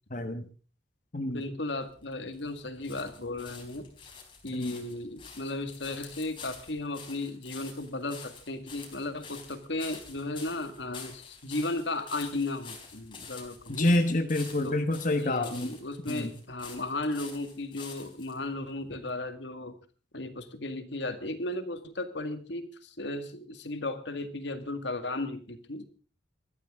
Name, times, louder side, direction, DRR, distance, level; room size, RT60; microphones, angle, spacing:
voice 1, 0.1-0.4 1.1-1.5 4.5-4.8 13.7-15.8 16.1-16.3, left 1 dB, 45° left, 6 dB, 1.5 m, -28 dB
voice 2, 1.3-3.9 4.4-13.9 14.6-14.8 15.2-19.8 20.1-25.9, left 2 dB, 70° left, 9 dB, 2.0 m, -35 dB
sound 1, 1.8-18.4 19.1-19.2, left 5 dB, 25° left, 4.4 m, -48 dB
21.0 x 14.0 x 3.7 m, 0.37 s
head